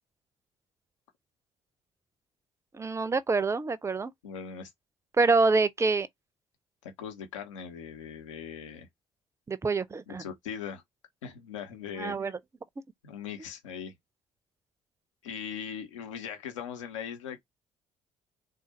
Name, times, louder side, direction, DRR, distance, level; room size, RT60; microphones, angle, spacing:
voice 1, 2.7-4.1 5.2-6.1 9.5-10.2 12.0-12.3, right 3 dB, 20° right, 0.5 m, -26 dB
voice 2, 4.2-4.7 6.8-8.9 10.1-10.8 11.2-12.3 13.0-13.9 15.2-17.4, left 7 dB, 75° left, 1.0 m, -40 dB
3.7 x 2.5 x 4.1 m
figure-of-eight pair, 45°, 16 cm